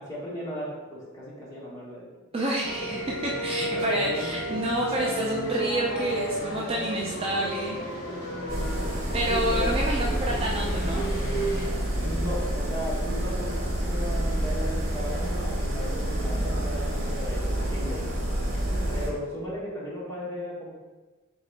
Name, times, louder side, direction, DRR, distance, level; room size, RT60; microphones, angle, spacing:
voice 1, 0.0-2.3 3.6-4.6 9.1-9.7 11.9-18.1 18.9-20.7, equal, 15° left, -7 dB, 1.2 m, -36 dB
voice 2, 2.3-7.8 9.1-11.0 13.0-13.2 16.0-16.4, right 1 dB, 25° right, -3 dB, 0.4 m, -29 dB
sound 1, 2.6-11.7, right 1 dB, 50° left, 1.1 m, -33 dB
sound 2, 8.5-19.1, right 1 dB, 65° right, 1.3 m, -28 dB
3.8 x 3.5 x 3.3 m, 1.2 s
head